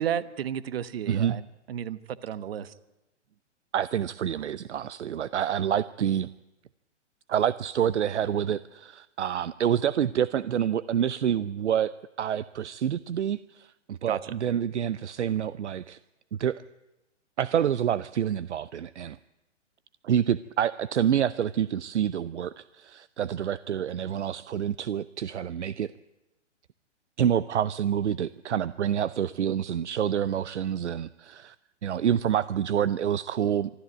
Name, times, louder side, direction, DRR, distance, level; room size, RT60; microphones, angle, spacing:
voice 1, 0.0-1.4 1.7-2.7 14.1-14.3, right 9 dB, 55° right, 16 dB, 1.2 m, -32 dB
voice 2, 1.1-1.4 3.7-6.3 7.3-16.0 16.3-16.6 17.4-19.2 20.0-25.9 27.2-31.6 31.8-33.7, right 9 dB, 70° right, 17 dB, 0.7 m, -27 dB
24.5 x 13.5 x 9.2 m, 0.98 s
figure-of-eight pair, 125°, 36 cm